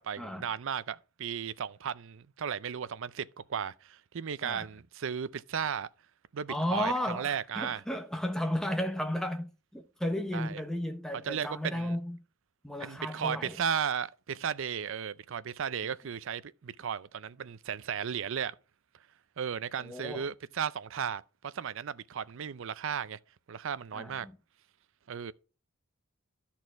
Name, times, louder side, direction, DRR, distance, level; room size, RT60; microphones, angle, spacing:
voice 1, 0.0-5.9 6.3-7.8 10.3-10.6 11.2-12.0 12.8-18.5 19.4-23.2 23.5-24.3 25.1-25.3, right 7 dB, 65° right, 0.5 m, -35 dB
voice 2, 6.5-12.2 12.6-13.6 19.8-20.3 23.9-24.3, left 1 dB, 5° left, 0.9 m, -34 dB
12.5 x 4.4 x 4.5 m
head